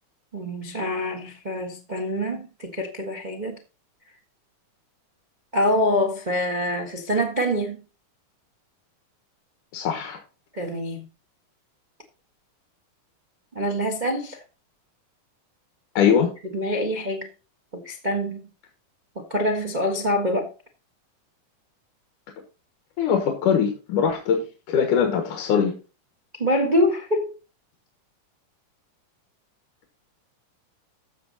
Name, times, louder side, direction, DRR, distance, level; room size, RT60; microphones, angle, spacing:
voice 1, 0.3-3.6 5.5-7.8 10.5-11.0 13.5-14.4 16.5-17.3 17.7-18.5 19.1-20.5 26.4-27.3, left 1 dB, 35° right, 0.7 m, -25 dB
voice 2, 9.7-10.2 16.0-16.3 23.0-25.7, left 7 dB, 75° left, 3.0 m, -22 dB
14.0 x 6.6 x 4.2 m
omnidirectional pair, 3.7 m